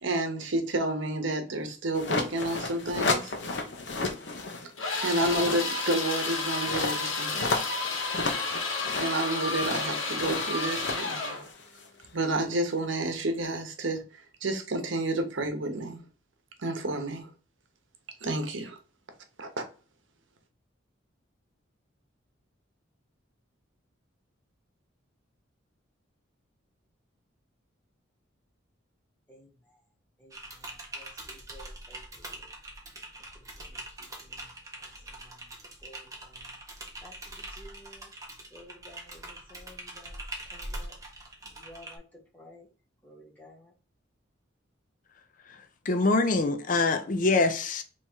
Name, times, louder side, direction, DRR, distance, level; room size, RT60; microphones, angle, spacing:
voice 1, 0.0-3.3 5.0-7.4 9.0-11.5 12.1-14.0 14.4-16.0 16.6-17.3 18.2-18.8 19.4-19.6, right 1 dB, 70° right, 0.9 m, -30 dB
sound 1, 1.9-4.7 5.0-12.1, left 3 dB, 60° left, 0.9 m, -33 dB
sound 2, 4.8-11.5, left 3 dB, 85° left, 1.4 m, -31 dB
Typing, 30.3-42.0, right 1 dB, 15° right, 0.8 m, -43 dB
voice 2, 30.9-32.4 34.0-34.4 35.8-36.3 37.0-37.1 37.5-38.1 38.5-40.2 40.5-40.9 41.6-42.0 42.3-42.7 43.0-43.7, equal, 10° left, 1.1 m, -53 dB
voice 3, 45.9-47.8, left 3 dB, 40° left, 0.5 m, -24 dB
3.5 x 3.0 x 4.4 m
head